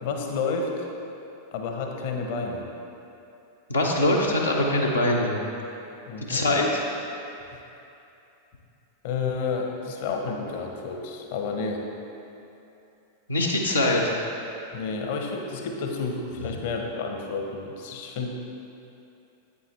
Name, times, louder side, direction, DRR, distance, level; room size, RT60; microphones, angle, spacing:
voice 1, 0.0-0.8 1.5-2.7 6.1-6.5 9.0-11.8 14.7-18.3, left 4 dB, 50° left, 2 dB, 0.8 m, -30 dB
voice 2, 3.7-5.4 6.3-6.7 13.3-14.0, left 1 dB, 80° left, -3 dB, 0.8 m, -22 dB
8.6 x 7.1 x 3.2 m, 2.8 s
figure-of-eight pair, 90°, 0 cm